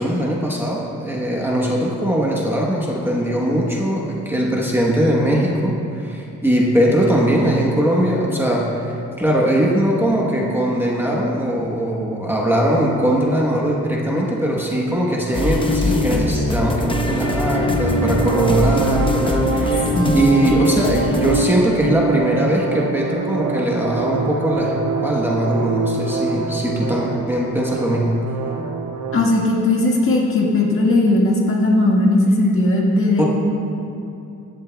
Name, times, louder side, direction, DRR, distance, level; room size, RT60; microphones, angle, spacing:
voice 1, 0.0-28.2 33.2-33.3, right 1 dB, 5° right, -3 dB, 1.0 m, -20 dB
sound 1, 15.2-29.2, right 5 dB, 60° right, 1.0 m, -26 dB
sound 2, 15.3-21.4, left 2 dB, 15° left, 0.6 m, -22 dB
voice 2, 29.1-33.2, left 2 dB, 45° left, -2 dB, 1.6 m, -17 dB
15.5 x 11.5 x 2.3 m, 2.6 s
wide cardioid pair, 160°, 30 cm